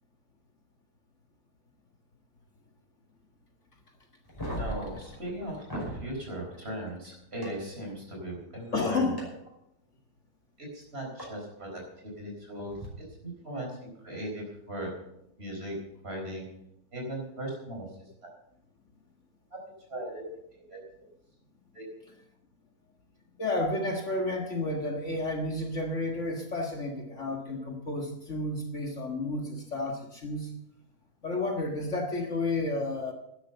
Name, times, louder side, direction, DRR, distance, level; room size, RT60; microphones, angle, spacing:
sound 1, 4.3-6.0 7.4-7.5 9.2-9.3 11.2-11.3 12.7-12.9, equal, 15° left, 5.6 m, -37 dB
voice 1, 4.6-9.1 10.6-12.7 13.2-14.9 15.4-15.8 16.0-16.5 16.9-17.8 19.5-19.6 19.9-20.2 20.7-20.8 21.7-21.8, right 1 dB, 40° right, 0 dB, 4.7 m, -38 dB
voice 2, 8.7-9.2 23.4-30.5 31.2-33.1, left 2 dB, 50° left, 2 dB, 1.9 m, -31 dB
12.0 x 10.5 x 6.8 m, 0.80 s
omnidirectional pair, 1.7 m